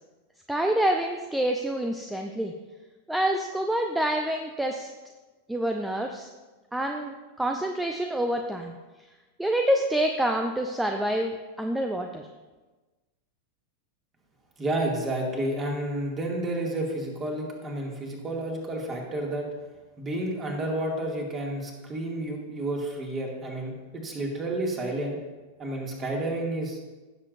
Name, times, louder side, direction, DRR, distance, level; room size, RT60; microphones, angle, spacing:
voice 1, 0.5-2.5 3.1-4.9 5.5-6.3 6.7-8.8 9.4-12.3, right 1 dB, 5° right, 4 dB, 0.6 m, -27 dB
voice 2, 14.6-19.5 20.0-25.2 25.6-26.8, right 1 dB, 25° right, -1 dB, 2.3 m, -30 dB
16.5 x 7.5 x 2.6 m, 1.2 s
figure-of-eight pair, 90°, 0 cm